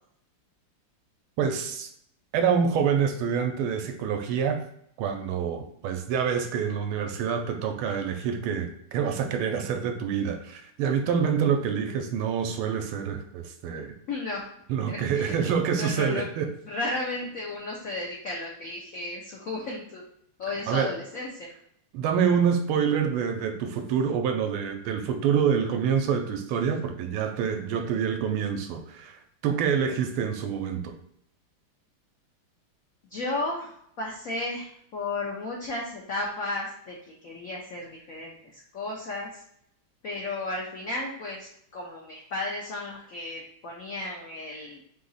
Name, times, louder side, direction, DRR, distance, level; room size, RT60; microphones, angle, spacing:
voice 1, 1.4-1.9 2.3-4.6 5.0-13.9 14.7-16.5 20.5-21.0 21.9-31.0, right 7 dB, 80° right, 5 dB, 1.4 m, -27 dB
voice 2, 14.1-14.4 14.9-15.3 15.8-16.3 16.7-20.0 20.4-21.5 33.1-33.7 34.0-39.4 40.0-44.8, left 2 dB, 75° left, -2 dB, 0.7 m, -34 dB
3.8 x 2.8 x 4.0 m, 0.70 s
omnidirectional pair, 2.4 m